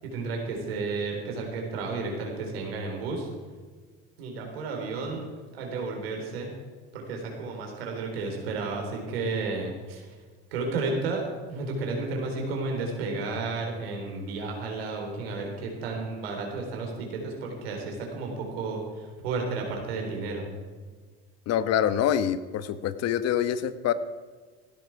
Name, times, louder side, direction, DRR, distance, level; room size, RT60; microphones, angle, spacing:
voice 1, 0.0-3.3 4.2-5.2 5.5-6.5 6.9-10.1 10.5-11.2 11.5-20.5, right 3 dB, 90° right, 1 dB, 3.9 m, -32 dB
voice 2, 21.5-23.9, left 10 dB, 60° left, 13 dB, 1.1 m, -25 dB
16.0 x 13.0 x 4.8 m, 1.5 s
hypercardioid pair, 75°, 29 cm